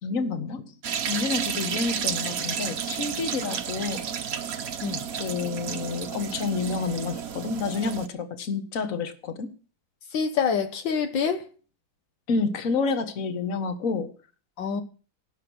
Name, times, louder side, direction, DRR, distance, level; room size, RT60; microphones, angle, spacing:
voice 1, 0.0-0.7 1.1-4.0 5.2-9.5 12.3-14.1, left 4 dB, 45° left, 1.8 m, -29 dB
sound 1, 0.8-8.1, right 7 dB, 55° right, 1.3 m, -31 dB
voice 2, 10.1-11.5 14.6-14.8, left 6 dB, 75° left, 1.8 m, -26 dB
17.5 x 6.8 x 6.4 m
omnidirectional pair, 2.1 m